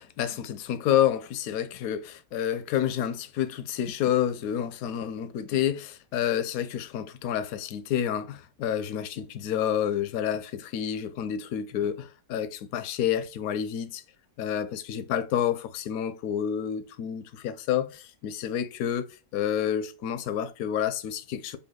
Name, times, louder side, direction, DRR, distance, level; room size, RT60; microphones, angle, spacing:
voice 1, 0.0-14.0 14.4-19.0 19.3-21.6, left 10 dB, 70° left, 0.9 m, -29 dB
5.5 x 2.2 x 2.2 m
omnidirectional pair, 1.9 m